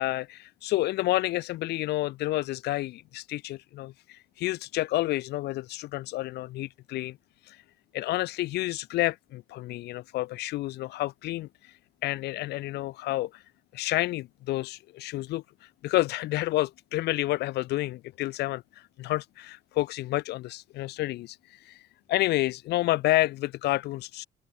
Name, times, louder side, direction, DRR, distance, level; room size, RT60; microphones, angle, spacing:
voice 1, 0.0-7.2 7.4-7.6 7.9-13.4 13.7-24.3, left 17 dB, 80° left, 1.9 m, -30 dB
cardioid pair, 110°, 17 cm